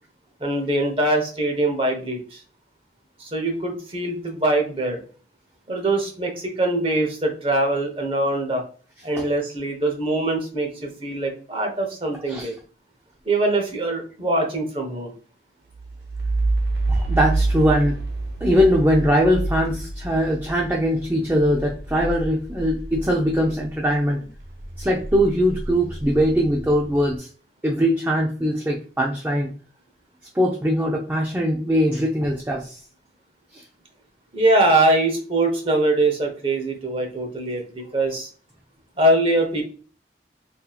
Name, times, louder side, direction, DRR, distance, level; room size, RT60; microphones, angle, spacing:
voice 1, 0.4-2.4 3.2-5.0 5.7-8.6 9.0-12.5 13.3-15.1 34.3-38.3 39.0-39.6, right 1 dB, 30° right, 2 dB, 0.8 m, -22 dB
sound 1, 15.7-24.0 24.3-26.9, right 2 dB, 65° right, 0.8 m, -28 dB
voice 2, 16.9-18.0 18.4-24.3 24.8-27.3 27.6-29.5 30.3-32.8 33.5-33.6 37.8-37.9, equal, 10° right, -2 dB, 0.4 m, -21 dB
4.0 x 2.7 x 2.3 m, 0.40 s
head